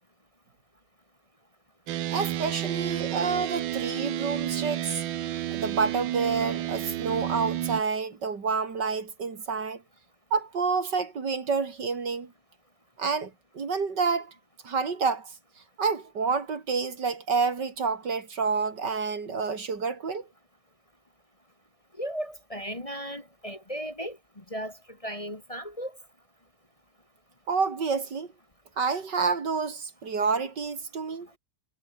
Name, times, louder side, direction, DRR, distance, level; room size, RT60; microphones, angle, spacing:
sound 1, 1.9-7.8, right 13 dB, 85° right, 1.6 m, -31 dB
voice 1, 2.1-5.0 5.5-9.8 10.3-12.3 13.0-14.3 14.6-15.3 15.8-20.3 27.5-28.3 28.8-31.3, right 5 dB, 65° right, 3.1 m, -28 dB
voice 2, 22.0-24.2 24.5-24.8 25.0-25.9, equal, 20° left, 2.1 m, -35 dB
omnidirectional pair, 2.0 m